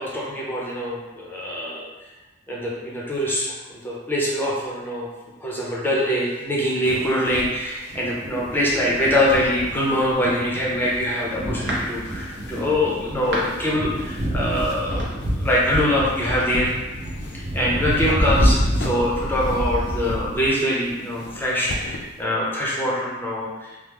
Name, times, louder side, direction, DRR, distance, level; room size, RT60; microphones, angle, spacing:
voice 1, 0.0-1.8 2.5-5.1 5.4-16.7 17.5-23.8, left 1 dB, 10° left, -6 dB, 0.6 m, -24 dB
sound 1, 6.8-22.3, left 2 dB, 60° left, 0.3 m, -40 dB
Thunder, 7.9-20.5, equal, 45° right, 0.6 m, -27 dB
sound 2, 10.6-19.1, equal, 75° right, 0.7 m, -37 dB
3.1 x 2.1 x 3.3 m, 1.1 s
head